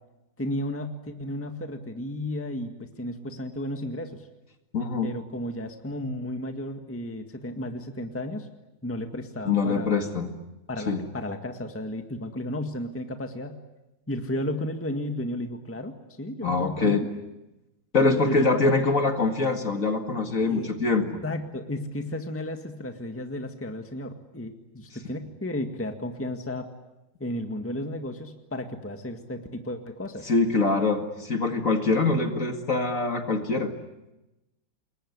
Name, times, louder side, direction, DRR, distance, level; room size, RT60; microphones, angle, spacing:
voice 1, 0.4-4.3 5.0-8.5 8.8-10.1 10.7-13.6 14.1-17.1 18.0-18.4 20.4-20.7 21.2-26.7 27.2-30.3, left 1 dB, 5° left, 6 dB, 1.7 m, -33 dB
voice 2, 4.7-5.1 9.5-10.3 10.9-11.0 16.4-17.0 17.9-21.0 30.3-33.7, left 3 dB, 40° left, 6 dB, 2.3 m, -24 dB
28.0 x 22.0 x 9.7 m, 0.99 s
omnidirectional pair, 2.1 m